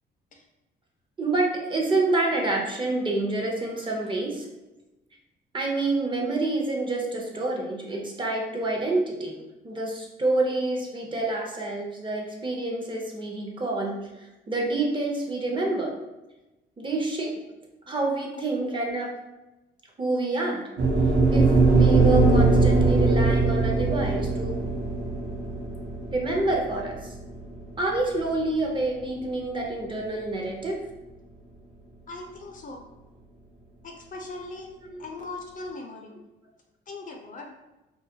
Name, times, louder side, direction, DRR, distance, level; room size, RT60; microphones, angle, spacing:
voice 1, 1.2-4.5 5.5-9.4 9.6-15.9 16.8-17.3 17.9-19.1 20.0-20.7 21.3-24.6 26.1-27.1 27.8-30.8 34.8-35.0, right 2 dB, 25° right, 0 dB, 0.5 m, -27 dB
sound 1, 20.8-29.0, right 3 dB, 65° right, 0.7 m, -21 dB
voice 2, 32.1-32.8 33.8-34.7 35.0-36.2 36.9-37.5, left 2 dB, 40° left, 2 dB, 0.4 m, -39 dB
2.2 x 2.1 x 2.7 m, 1.0 s
cardioid pair, 90°, 20 cm